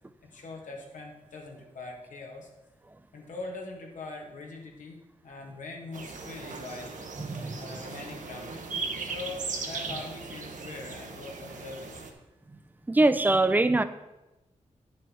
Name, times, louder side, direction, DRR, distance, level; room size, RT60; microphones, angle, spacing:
voice 1, 0.3-2.5 3.1-5.0 5.2-7.0 7.6-8.6 9.0-12.0, left 3 dB, 90° left, 0 dB, 1.7 m, -42 dB
sound 1, 5.9-12.1, right 4 dB, 85° right, 1.1 m, -38 dB
voice 2, 7.2-7.8 9.9-10.0 12.5-12.6 12.9-13.8, right 2 dB, 15° right, 12 dB, 0.4 m, -24 dB
9.7 x 6.3 x 4.4 m, 1.0 s
wide cardioid pair, 140°, 13 cm